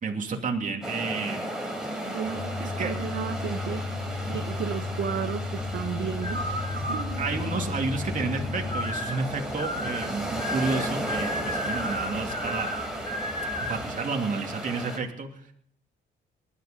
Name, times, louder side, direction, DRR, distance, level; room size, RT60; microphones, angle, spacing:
voice 1, 0.0-1.5 2.6-2.9 7.2-12.7 13.6-15.5, right 4 dB, 40° right, 1 dB, 2.7 m, -31 dB
sound 1, 0.8-15.0, right 1 dB, 5° right, 4.8 m, -35 dB
voice 2, 2.1-3.8 4.2-7.4, right 8 dB, 65° right, 5 dB, 1.2 m, -34 dB
sound 2, 2.3-8.9, left 3 dB, 55° left, 3.4 m, -34 dB
sound 3, 5.6-13.9, left 1 dB, 25° left, 5.9 m, -35 dB
20.0 x 11.5 x 5.2 m, 0.65 s
cardioid pair, 90°, 20 cm